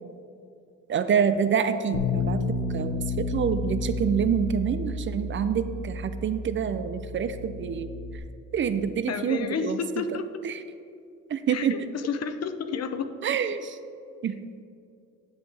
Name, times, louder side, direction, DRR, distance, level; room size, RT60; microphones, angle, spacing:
voice 1, 0.9-2.4 2.7-7.9 8.5-9.8 10.4-10.6 11.3-11.8 13.2-13.8 14.2-14.4, right 7 dB, 40° right, 11 dB, 0.4 m, -27 dB
Bass guitar, 1.9-8.2, left 3 dB, 85° left, 1.0 m, -31 dB
voice 2, 9.1-10.3 11.5-13.1, left 6 dB, 55° left, 9 dB, 0.6 m, -31 dB
10.5 x 6.3 x 3.3 m, 2.5 s
cardioid pair, 90°, 30 cm